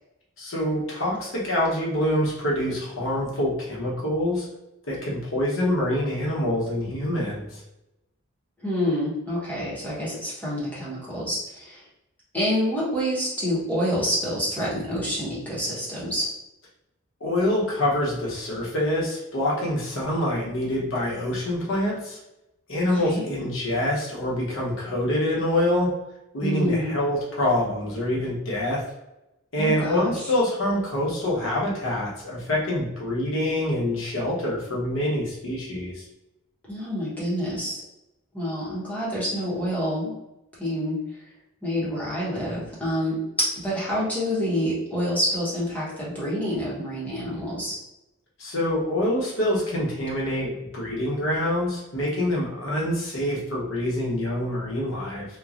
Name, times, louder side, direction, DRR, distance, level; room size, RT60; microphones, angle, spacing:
voice 1, 0.4-4.4 4.9-7.6 17.2-22.2 22.7-25.9 26.3-28.8 29.5-36.0 48.4-55.3, left 1 dB, 70° left, -4 dB, 0.9 m, -26 dB
voice 2, 8.6-11.8 12.3-16.3 22.8-23.3 26.4-27.0 29.6-30.3 36.7-37.8 38.3-40.2 40.6-41.2 41.6-47.8, equal, 10° left, -8 dB, 0.9 m, -27 dB
3.0 x 2.2 x 2.4 m, 0.92 s
head